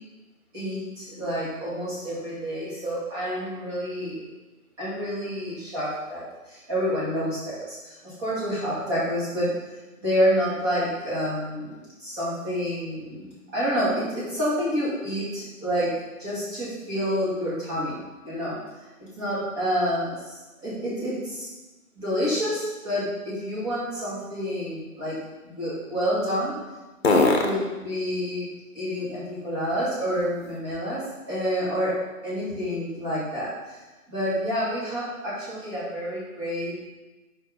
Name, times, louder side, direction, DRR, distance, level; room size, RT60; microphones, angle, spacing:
voice 1, 0.5-4.2 4.8-9.5 10.0-18.0 18.2-18.6 19.2-20.4 20.6-21.5 22.0-26.6 27.0-28.5 28.7-33.8 34.1-36.9, equal, 20° right, -10 dB, 2.5 m, -28 dB
sound 1, 22.1-31.1 31.6-35.4, left 2 dB, 45° left, 1.1 m, -33 dB
8.0 x 5.7 x 3.8 m, 1.2 s
figure-of-eight pair, 150°, 44 cm